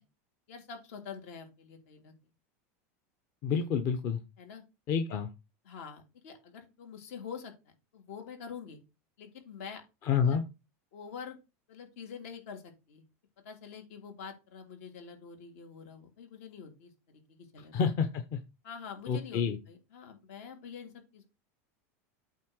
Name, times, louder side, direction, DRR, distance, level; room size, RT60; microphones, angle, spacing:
voice 1, 0.5-2.1 4.4-4.6 5.6-8.8 9.2-9.8 10.2-10.4 10.9-11.4 11.7-13.0 13.4-17.7 18.6-21.3, left 6 dB, 70° left, 4 dB, 3.3 m, -46 dB
voice 2, 3.4-4.2 4.9-5.3 10.0-10.4 17.7-18.4 19.1-19.6, left 6 dB, 45° left, 7 dB, 1.0 m, -28 dB
8.5 x 3.8 x 6.4 m, 0.26 s
supercardioid pair, 150°, 8 cm